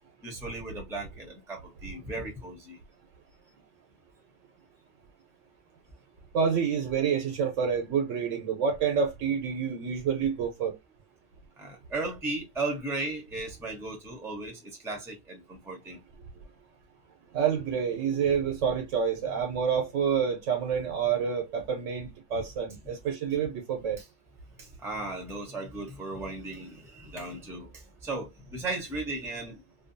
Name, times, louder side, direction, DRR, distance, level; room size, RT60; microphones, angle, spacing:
voice 1, 0.2-2.8 11.6-16.0 24.0-24.1 24.6-29.6, right 2 dB, 5° right, 0.6 m, -36 dB
voice 2, 6.3-10.8 17.3-24.0, right 7 dB, 85° right, 1.0 m, -28 dB
2.6 x 2.2 x 2.5 m
omnidirectional pair, 1.3 m